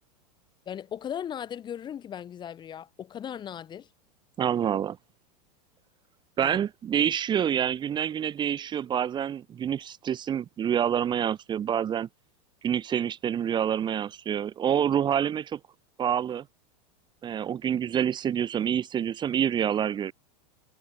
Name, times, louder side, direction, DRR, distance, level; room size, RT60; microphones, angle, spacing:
voice 1, 0.7-3.9 6.4-6.6, left 9 dB, 25° left, 3.0 m, -37 dB
voice 2, 4.4-5.0 6.4-12.1 12.6-15.6 16.0-16.4 17.2-20.1, right 9 dB, 20° right, 3.4 m, -27 dB
supercardioid pair, 145°, 20 cm